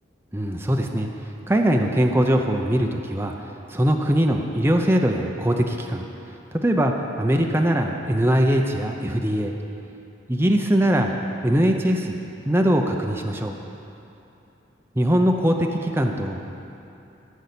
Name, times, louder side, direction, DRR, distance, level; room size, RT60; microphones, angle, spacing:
voice 1, 0.3-1.1 1.5-3.3 3.7-6.0 6.5-9.5 10.3-11.1 11.4-12.2 12.5-13.6 15.0-16.4, equal, 10° right, 2 dB, 0.6 m, -21 dB
14.5 x 5.4 x 8.3 m, 2.8 s
head